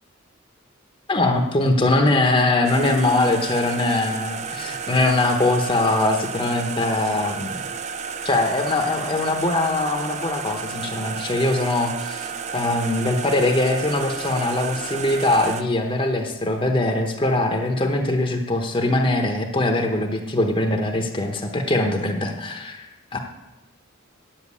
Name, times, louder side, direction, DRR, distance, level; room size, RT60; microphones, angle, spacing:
voice 1, 1.1-7.6 8.2-23.2, left 2 dB, 25° left, 3 dB, 0.9 m, -22 dB
sound 1, 2.6-15.6, right 6 dB, 35° right, 0.5 m, -32 dB
9.0 x 7.4 x 8.4 m, 0.99 s
head